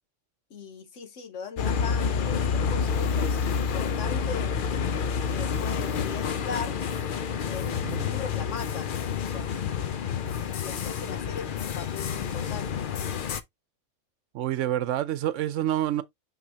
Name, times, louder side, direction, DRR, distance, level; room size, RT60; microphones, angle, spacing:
voice 1, 0.5-4.6 5.3-6.8 7.5-9.6 10.6-12.8, left 6 dB, 90° left, 1.5 m, -39 dB
sound 1, 1.6-13.4, left 6 dB, 55° left, 0.7 m, -29 dB
voice 2, 7.8-8.1 14.3-16.0, right 12 dB, 90° right, 0.9 m, -28 dB
6.1 x 5.5 x 2.8 m
omnidirectional pair, 1.2 m